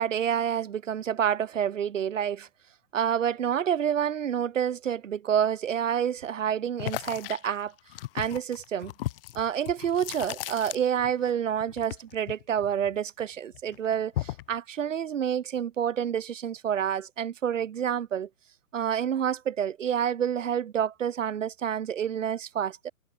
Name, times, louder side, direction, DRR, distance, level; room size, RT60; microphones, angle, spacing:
voice 1, 0.0-2.5 2.9-7.7 8.1-8.9 9.3-18.3 18.7-22.9, right 9 dB, 70° right, 1.8 m, -28 dB
sound 1, 6.8-11.3 11.6-13.2 13.5-14.5, left 15 dB, 45° left, 1.0 m, -36 dB
hypercardioid pair, 125°, 40 cm